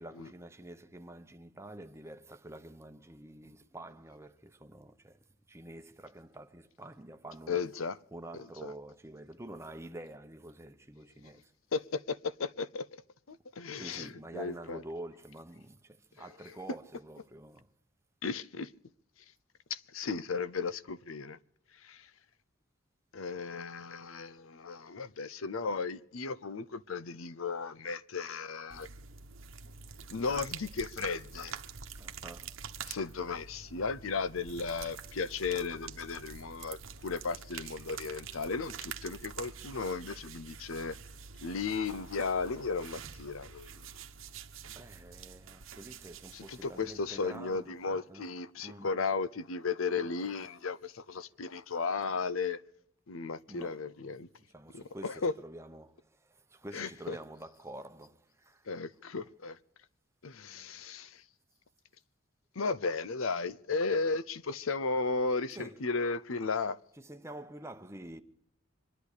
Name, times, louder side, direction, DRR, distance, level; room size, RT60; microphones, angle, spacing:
voice 1, 0.0-7.6 8.1-11.5 13.8-17.7 31.9-32.6 44.7-48.3 48.6-49.0 53.5-53.9 54.4-58.7 65.5-65.9 67.0-68.2, right 1 dB, 15° right, 0.9 m, -48 dB
voice 2, 7.5-8.0 8.3-8.7 11.7-12.9 13.3-14.8 18.2-18.7 19.7-21.4 21.8-22.0 23.1-28.9 30.1-31.5 32.9-41.0 41.4-43.7 46.3-52.6 53.1-54.3 54.7-55.3 56.7-57.2 58.7-59.6 60.2-61.2 62.6-66.8, left 4 dB, 80° left, 0.7 m, -35 dB
sound 1, 28.7-47.6, right 6 dB, 75° right, 1.1 m, -47 dB
25.5 x 11.0 x 5.0 m
head